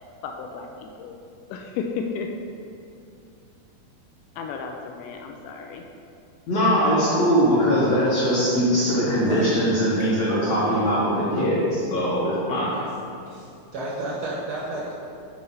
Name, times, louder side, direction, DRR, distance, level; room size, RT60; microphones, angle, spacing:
voice 1, 0.2-1.2 1.5-2.3 4.4-5.8, left 5 dB, 80° left, 3 dB, 1.9 m, -33 dB
voice 2, 6.5-12.8, equal, 65° left, -7 dB, 1.7 m, -21 dB
voice 3, 9.2-9.6 10.3-10.8 12.7-12.9 13.3-15.0, right 2 dB, 75° right, -6 dB, 1.2 m, -31 dB
7.7 x 4.2 x 5.5 m, 2.5 s
omnidirectional pair, 4.2 m